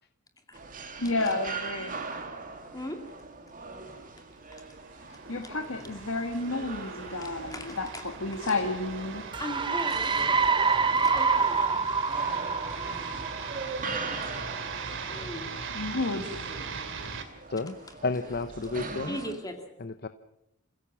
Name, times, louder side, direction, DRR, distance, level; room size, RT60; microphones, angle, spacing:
sound 1, 0.5-19.3, right 3 dB, 40° right, 2.6 m, -41 dB
voice 1, 1.0-1.9 5.3-9.2 14.9-15.0 15.7-16.4, left 2 dB, 65° left, 5 dB, 1.9 m, -31 dB
sound 2, 4.7-17.2, right 5 dB, 60° right, 2.5 m, -40 dB
voice 2, 7.2-8.0 8.4-8.5 9.4-11.8 14.2-14.5 15.1-15.7 17.9-18.0 19.1-19.7, left 1 dB, 15° left, 5 dB, 2.4 m, -39 dB
sound 3, 9.3-13.9, right 5 dB, 20° right, 0.8 m, -26 dB
voice 3, 18.0-19.2 19.8-20.1, left 3 dB, 45° left, 10 dB, 0.8 m, -31 dB
28.0 x 16.0 x 7.3 m, 0.83 s
head